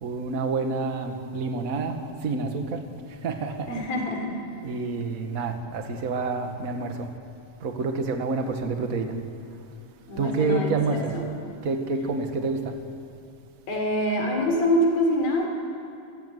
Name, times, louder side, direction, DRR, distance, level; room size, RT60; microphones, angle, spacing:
voice 1, 0.0-2.0 2.2-2.8 3.1-3.7 4.6-7.1 7.6-9.1 10.2-11.1 11.6-12.7, right 3 dB, 35° right, 5 dB, 1.5 m, -28 dB
voice 2, 3.7-4.3 10.1-11.3 13.7-15.5, left 1 dB, 90° left, 2 dB, 5.7 m, -25 dB
27.5 x 16.5 x 9.5 m, 2.6 s
omnidirectional pair, 4.0 m